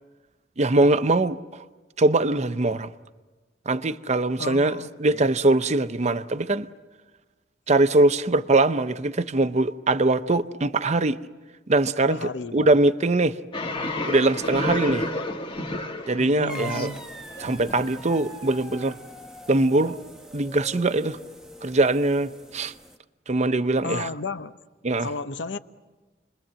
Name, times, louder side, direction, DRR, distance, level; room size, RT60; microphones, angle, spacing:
voice 1, 0.6-1.6 2.0-2.9 3.7-6.7 7.7-11.2 11.7-13.4 14.0-15.1 16.1-16.9 17.4-19.0 19.5-20.0 20.3-21.2 21.6-22.7 23.3-24.1 24.8-25.1, right 2 dB, 40° right, 0.7 m, -22 dB
voice 2, 4.4-5.3 12.1-12.7 16.2-17.0 23.8-24.6 25.0-25.6, left 3 dB, 85° left, 0.9 m, -33 dB
sound 1, 13.5-18.5, left 2 dB, 30° left, 1.6 m, -31 dB
sound 2, 16.5-23.0, equal, 5° right, 1.1 m, -43 dB
29.0 x 21.5 x 7.6 m
head